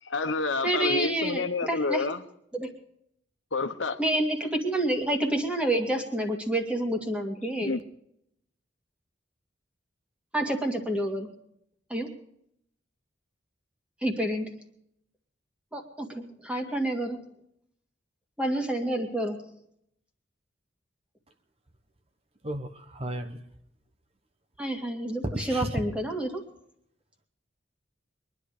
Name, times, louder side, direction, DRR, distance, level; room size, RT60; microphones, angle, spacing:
voice 1, 0.0-2.2 3.5-4.0 7.6-7.8, left 3 dB, 80° left, 1.2 m, -29 dB
voice 2, 0.6-2.0 2.5-2.7 4.0-7.7 10.3-11.3 11.9-12.1 14.0-14.5 15.7-17.2 18.4-19.4 24.6-26.4, right 1 dB, 5° right, 2.2 m, -28 dB
voice 3, 22.4-23.4 25.3-25.8, right 1 dB, 30° right, 1.2 m, -33 dB
23.0 x 11.0 x 5.0 m
head